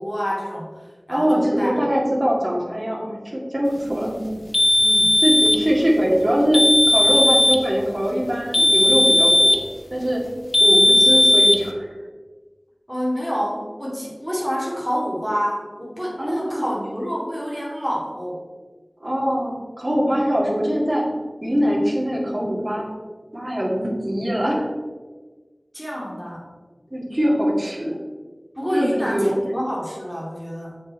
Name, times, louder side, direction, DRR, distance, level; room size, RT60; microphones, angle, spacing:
voice 1, 0.0-1.7 3.8-4.5 4.8-5.2 12.9-18.4 25.7-26.5 28.6-30.7, equal, ahead, -5 dB, 2.4 m, -28 dB
voice 2, 1.1-4.1 5.2-9.6 9.9-10.2 10.6-11.9 16.2-16.7 19.0-21.1 21.4-22.9 23.3-24.7 26.9-28.0 28.7-29.4, equal, 35° right, -5 dB, 2.1 m, -22 dB
sound 1, 4.5-5.7 6.5-7.7 8.5-9.7 10.5-11.7, left 1 dB, 70° left, 0.7 m, -16 dB
7.1 x 5.1 x 4.2 m, 1.3 s
wide cardioid pair, 50°, 0 cm